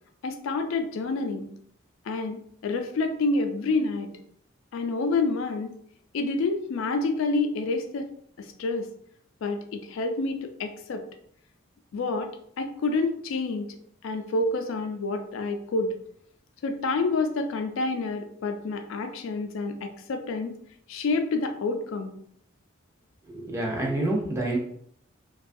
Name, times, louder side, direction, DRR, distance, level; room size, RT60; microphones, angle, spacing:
voice 1, 0.2-1.5 2.0-4.1 4.7-5.7 6.1-8.1 8.4-8.9 9.4-11.0 11.9-12.3 12.6-13.8 14.0-15.9 16.6-20.5 20.9-22.1, left 3 dB, 70° left, 6 dB, 0.3 m, -28 dB
voice 2, 23.3-24.6, right 2 dB, 15° right, -2 dB, 0.5 m, -27 dB
2.6 x 2.3 x 2.5 m, 0.67 s
head